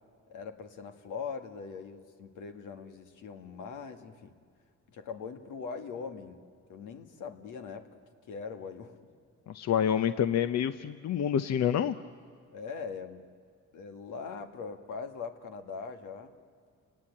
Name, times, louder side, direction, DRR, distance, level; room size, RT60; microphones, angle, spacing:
voice 1, 0.3-4.3 4.9-6.4 6.7-8.0 8.3-9.0 12.5-13.3 13.7-16.3, left 5 dB, 85° left, 6 dB, 2.0 m, -41 dB
voice 2, 9.5-12.0, left 9 dB, 60° left, 11 dB, 0.8 m, -27 dB
30.0 x 19.0 x 8.9 m, 2.2 s
cardioid pair, 90°, 30 cm